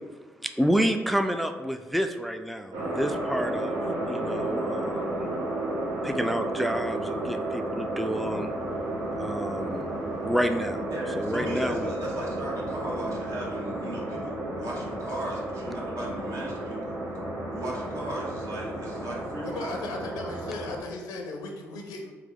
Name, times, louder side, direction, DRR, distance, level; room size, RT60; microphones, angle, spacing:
voice 1, 0.4-5.3 6.0-8.5 9.2-9.9 10.2-10.8 11.2-11.9, equal, ahead, 7 dB, 0.3 m, -29 dB
sound 1, 2.7-20.8, right 1 dB, 80° right, 0.9 m, -32 dB
voice 2, 10.9-17.0 17.5-19.8, right 1 dB, 60° right, -4 dB, 1.4 m, -36 dB
voice 3, 19.4-22.1, left 3 dB, 80° left, 3 dB, 0.5 m, -36 dB
3.6 x 3.3 x 3.5 m, 1.4 s
hypercardioid pair, 50°, 6 cm